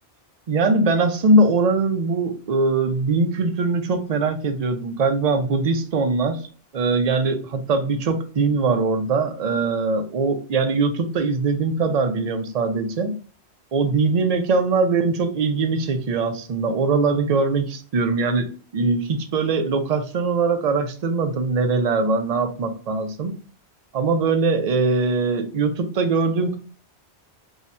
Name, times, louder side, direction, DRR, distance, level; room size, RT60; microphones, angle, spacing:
voice 1, 0.5-6.5 6.7-13.1 13.7-18.5 18.7-23.3 23.9-26.6, right 3 dB, 50° right, 6 dB, 0.5 m, -21 dB
2.7 x 2.3 x 4.1 m, 0.39 s
omnidirectional pair, 1.1 m